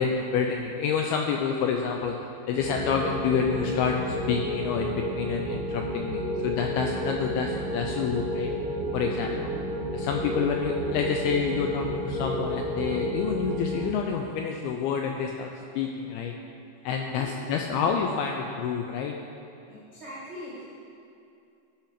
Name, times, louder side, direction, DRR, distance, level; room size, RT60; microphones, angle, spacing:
voice 1, 0.0-2.2 2.5-8.5 8.9-9.3 9.9-15.5 15.8-16.3 16.8-19.2, left 6 dB, 90° left, 2 dB, 2.2 m, -28 dB
sound 1, 2.5-13.8, right 1 dB, 50° left, 3.6 m, -31 dB
voice 2, 9.1-9.4 17.1-17.4 17.7-17.8 19.7-20.8, equal, 70° right, -8 dB, 1.0 m, -42 dB
14.5 x 5.8 x 5.0 m, 2.7 s
omnidirectional pair, 5.1 m